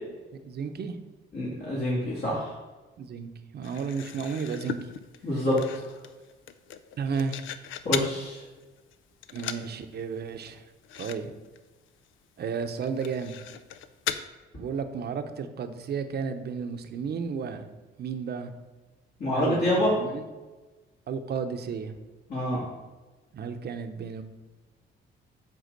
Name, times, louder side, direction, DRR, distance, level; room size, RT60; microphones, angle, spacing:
voice 1, 0.4-1.0 3.0-4.9 7.0-7.4 9.3-10.6 11.0-11.3 12.4-13.3 14.5-17.7 18.0-18.5 19.3-20.2 21.1-21.9 23.3-24.2, right 6 dB, 55° right, 7 dB, 0.8 m, -33 dB
voice 2, 1.3-2.5 5.2-5.8 7.8-8.4 19.2-19.9 22.3-22.6, left 1 dB, 55° left, -7 dB, 2.2 m, -26 dB
sound 1, 3.6-8.2 8.6-9.0 9.2-9.7 10.0-10.1 10.4-10.5 10.8-11.2 11.4-11.6 12.0-12.1 12.8-14.2, left 10 dB, 80° left, 0.5 m, -37 dB
8.1 x 3.6 x 6.5 m, 1.2 s
cardioid pair, 90°, 20 cm